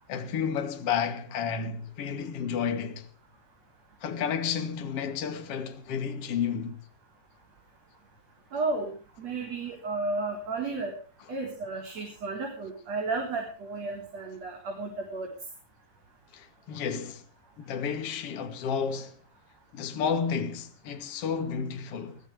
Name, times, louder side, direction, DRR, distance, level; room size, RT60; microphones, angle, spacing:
voice 1, 0.1-3.1 4.0-6.8 16.3-17.2 17.6-19.1 19.7-22.2, left 7 dB, 45° left, 3.0 m, -31 dB
voice 2, 8.5-10.9 11.3-15.3, right 3 dB, 45° right, 5.3 m, -33 dB
22.5 x 17.5 x 3.5 m
omnidirectional pair, 4.3 m